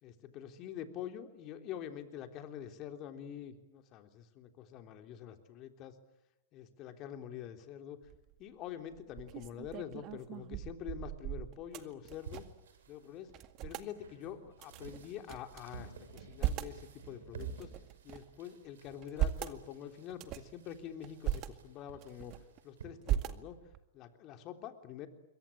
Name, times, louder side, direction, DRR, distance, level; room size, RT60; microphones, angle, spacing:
voice 1, 0.0-6.0 6.5-8.0 8.4-12.5 12.9-13.3 13.6-17.7 18.0-22.3 22.6-23.6 23.9-25.1, left 10 dB, 35° left, 6 dB, 3.5 m, -46 dB
sound 1, 8.0-8.4 8.9-12.7 12.9-13.0 13.3-13.9 14.6-15.6 16.1-16.8 17.4-18.3 18.9-19.6 20.1-20.6 21.0-21.5 22.0-22.6 23.0-23.8, right 12 dB, 35° right, 2.0 m, -38 dB
sound 2, 12.1-22.9, right 6 dB, 70° right, 7.1 m, -53 dB
26.5 x 23.5 x 8.9 m, 0.95 s
hypercardioid pair, 110°, 0 cm